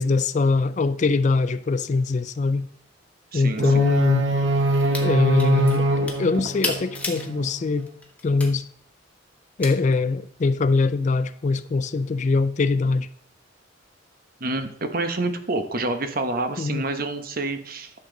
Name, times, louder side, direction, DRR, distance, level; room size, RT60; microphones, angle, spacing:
voice 1, 0.0-2.7 3.3-4.3 5.0-7.9 8.2-8.7 9.6-13.1 16.6-16.8, left 3 dB, 40° left, 0.4 m, -22 dB
voice 2, 3.3-3.9 14.4-17.9, right 2 dB, 50° right, 1.0 m, -28 dB
sound 1, 3.6-7.6, right 2 dB, 80° right, 1.2 m, -24 dB
sound 2, 4.7-5.1 5.4-7.3 7.8-8.5 9.6-9.7, left 2 dB, 5° left, 1.4 m, -32 dB
11.0 x 6.9 x 3.9 m
head